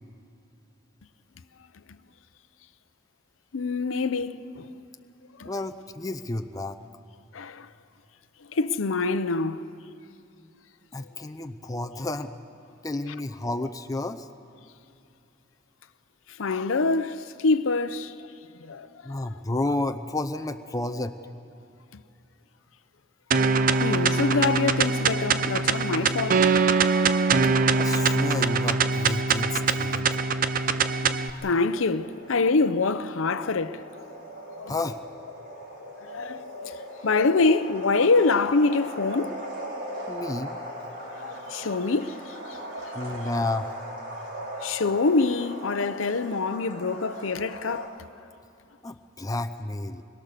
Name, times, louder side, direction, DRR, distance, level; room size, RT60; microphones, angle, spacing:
voice 1, 3.5-4.7 5.4-5.5 7.3-7.7 8.5-9.7 16.4-18.1 18.6-18.9 23.8-26.5 31.0-33.8 34.6-34.7 36.0-36.7 37.0-39.4 41.1-43.3 44.5-47.9, left 3 dB, 85° left, 0.7 m, -25 dB
voice 2, 5.4-6.8 10.9-12.3 12.8-14.3 19.0-21.2 27.8-30.2 34.7-35.0 40.1-40.6 42.9-43.8 48.8-50.0, left 2 dB, 20° left, 0.6 m, -31 dB
sound 1, 23.3-31.3, right 4 dB, 45° right, 0.6 m, -23 dB
sound 2, 31.5-47.9, equal, 60° right, 5.9 m, -39 dB
24.0 x 21.5 x 6.7 m
head